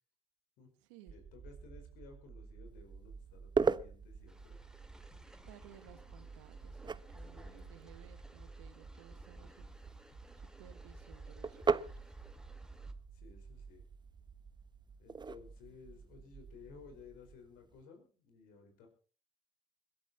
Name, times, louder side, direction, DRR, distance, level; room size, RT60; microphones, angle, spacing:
voice 1, 1.1-4.6 7.2-7.8 13.1-13.8 15.0-18.9, left 5 dB, 75° left, 4.9 m, -57 dB
sound 1, 1.1-17.3, right 5 dB, 50° right, 1.7 m, -54 dB
sound 2, 2.7-17.8, right 5 dB, 30° right, 0.8 m, -41 dB
sound 3, 4.3-12.9, equal, 5° right, 2.3 m, -55 dB
voice 2, 5.4-9.7 10.6-11.9, right 12 dB, 85° right, 1.4 m, -58 dB
21.5 x 12.5 x 4.3 m
hypercardioid pair, 50°, 15 cm